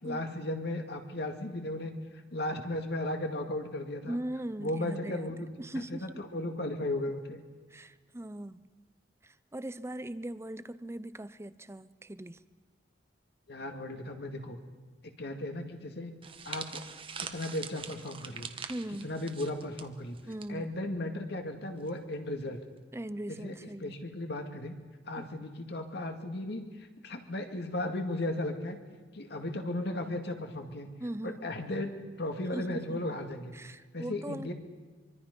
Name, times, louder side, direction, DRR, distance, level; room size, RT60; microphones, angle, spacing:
voice 1, 0.0-4.2 4.6-7.4 13.5-14.6 15.0-16.1 16.4-16.8 17.2-18.5 19.0-20.2 20.5-22.6 23.3-24.7 25.1-28.8 29.1-30.9 31.2-33.5 33.9-34.5, left 1 dB, 60° left, 4 dB, 2.3 m, -36 dB
voice 2, 4.1-5.3 5.6-6.2 7.7-8.7 9.2-12.4 18.7-19.1 20.3-20.7 22.9-24.0 25.2-25.5 31.0-31.5 32.5-33.0 33.5-34.5, right 1 dB, 15° right, 15 dB, 0.6 m, -40 dB
sound 1, 16.2-20.5 20.7-21.0 21.9-22.1, right 6 dB, 30° right, 1.1 m, -43 dB
24.5 x 24.5 x 5.4 m, 1.4 s
head